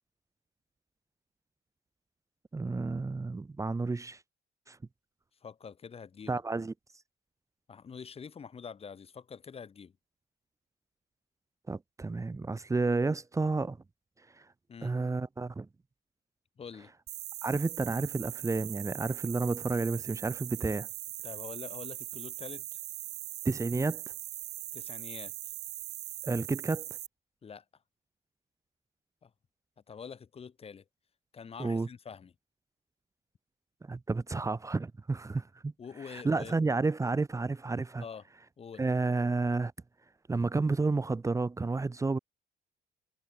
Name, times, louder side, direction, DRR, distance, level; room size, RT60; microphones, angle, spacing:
voice 1, 2.5-4.2 4.7-4.8 6.3-6.7 11.7-13.8 14.3-14.5 14.8-15.7 17.4-20.9 23.4-24.0 26.2-26.9 31.6-31.9 33.8-35.7 36.0-38.0 38.8-39.7 40.3-42.2, right 3 dB, 20° right, 2.2 m, -31 dB
voice 2, 5.4-6.4 7.7-9.9 14.7-14.9 16.6-16.9 21.2-22.8 24.7-25.5 27.4-27.6 29.2-29.3 29.9-30.8 31.3-32.3 35.8-36.5 38.0-38.2 38.6-38.8, left 6 dB, 35° left, 5.1 m, -45 dB
sound 1, 17.1-27.1, right 15 dB, 75° right, 1.9 m, -41 dB
cardioid pair, 110°, 17 cm